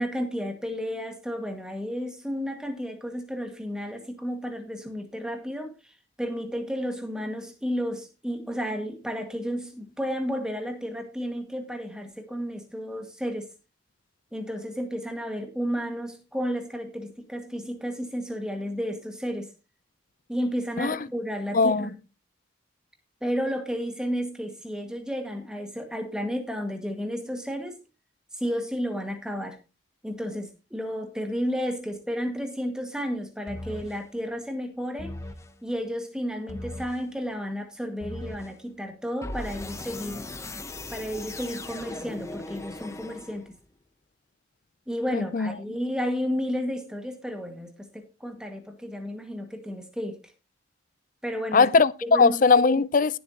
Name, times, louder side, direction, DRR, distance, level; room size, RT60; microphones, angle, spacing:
voice 1, 0.0-13.5 14.3-19.5 20.3-22.0 23.2-27.8 28.3-29.6 30.0-35.1 35.6-40.2 40.9-43.5 44.9-50.2 51.2-51.7 52.0-52.4, equal, 5° right, 1.8 m, -32 dB
voice 2, 21.5-21.9 45.1-45.5 51.5-53.2, left 4 dB, 45° left, 0.5 m, -20 dB
sound 1, 33.5-34.0 35.0-35.5 36.5-37.0 38.0-38.6 39.2-43.6, left 2 dB, 15° left, 0.8 m, -38 dB
17.0 x 7.9 x 2.9 m
head